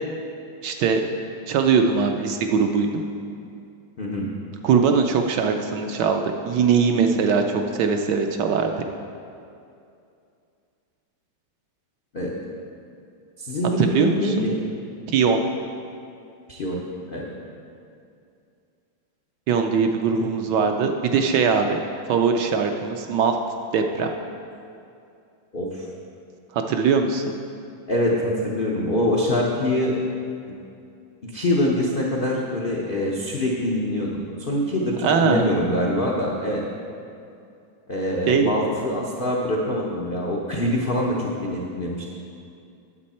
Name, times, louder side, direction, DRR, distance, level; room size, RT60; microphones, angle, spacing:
voice 1, 0.6-1.0 1.5-3.0 4.6-8.7 13.8-14.3 15.1-15.4 19.5-21.8 22.1-23.4 23.7-24.1 26.5-27.2 35.0-35.5 38.3-38.5, right 5 dB, 75° right, 4 dB, 1.1 m, -21 dB
voice 2, 4.0-4.3 12.1-12.3 13.4-14.6 16.5-16.8 17.1-17.3 20.2-20.3 25.5-25.8 27.9-29.9 30.5-30.6 31.2-36.6 37.9-42.1, left 1 dB, 80° left, -3 dB, 0.4 m, -24 dB
9.6 x 7.3 x 4.2 m, 2.5 s
omnidirectional pair, 2.2 m